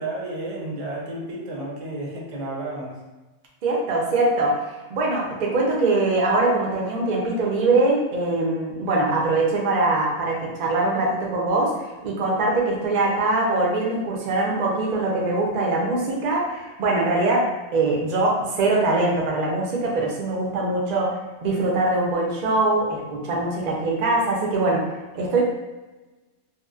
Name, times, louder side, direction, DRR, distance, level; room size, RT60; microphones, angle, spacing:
voice 1, 0.0-3.0, right 2 dB, 80° right, -3 dB, 1.0 m, -32 dB
voice 2, 3.6-17.5 17.7-24.9 25.1-25.4, right 2 dB, 55° right, -2 dB, 0.5 m, -22 dB
2.8 x 2.0 x 2.3 m, 1.2 s
omnidirectional pair, 1.2 m